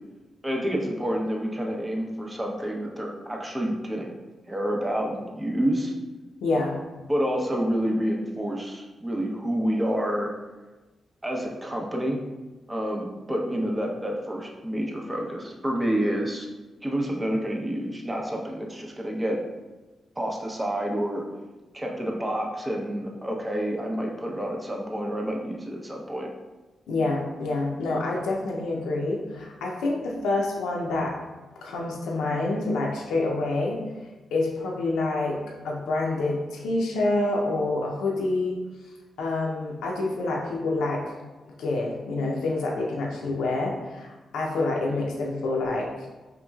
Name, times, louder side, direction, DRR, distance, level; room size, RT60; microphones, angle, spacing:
voice 1, 0.4-4.1 4.5-5.9 7.1-10.3 11.2-12.2 12.7-16.5 16.8-19.4 20.2-21.2 21.7-26.3, equal, 20° right, 0 dB, 0.7 m, -28 dB
voice 2, 6.4-6.7 26.9-31.1 31.6-33.8 34.3-35.4 35.6-38.6 39.2-41.1 41.6-45.9, left 2 dB, 85° left, -2 dB, 0.5 m, -27 dB
5.1 x 2.9 x 2.3 m, 1.2 s
supercardioid pair, 50°, 0 cm